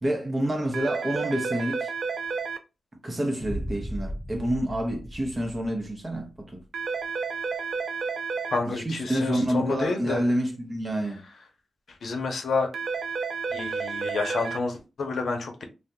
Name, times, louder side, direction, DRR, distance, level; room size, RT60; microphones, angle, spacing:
voice 1, 0.0-1.9 3.0-6.6 8.7-11.2, right 1 dB, 25° right, 0.7 m, -28 dB
sound 1, 0.7-2.6 6.7-8.6 12.7-14.6, right 5 dB, 65° right, 0.4 m, -31 dB
Boom, 3.4-6.4, equal, 10° left, 0.4 m, -36 dB
voice 2, 8.5-10.2 11.9-12.7 13.5-15.6, left 4 dB, 70° left, 0.7 m, -29 dB
2.7 x 2.1 x 3.4 m
wide cardioid pair, 170°, 0 cm